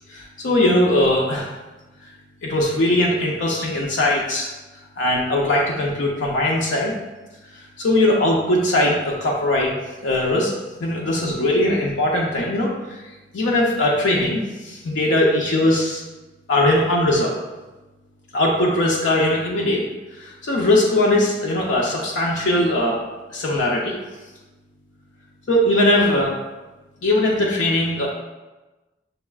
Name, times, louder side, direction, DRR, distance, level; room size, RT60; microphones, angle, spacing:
voice 1, 0.1-1.6 2.4-4.5 5.0-7.0 7.5-10.5 10.8-13.0 13.3-16.0 16.5-17.4 18.3-19.9 20.2-23.0 23.3-24.0 25.5-26.4 27.0-28.1, left 1 dB, 80° left, -3 dB, 0.5 m, -20 dB
6.5 x 2.3 x 2.3 m, 1.1 s
head